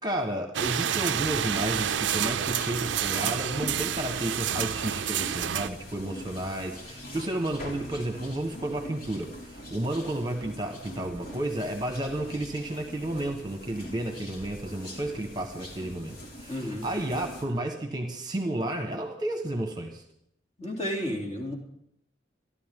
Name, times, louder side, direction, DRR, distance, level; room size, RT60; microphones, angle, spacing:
voice 1, 0.0-20.0, right 1 dB, 20° right, 5 dB, 1.3 m, -32 dB
sound 1, 0.5-5.7, right 9 dB, 75° right, 0.5 m, -29 dB
sound 2, 1.1-17.4, equal, 50° left, 3.0 m, -43 dB
voice 2, 16.5-16.9 20.6-21.6, equal, 35° left, 0 dB, 3.1 m, -32 dB
28.0 x 11.5 x 3.8 m, 0.73 s
head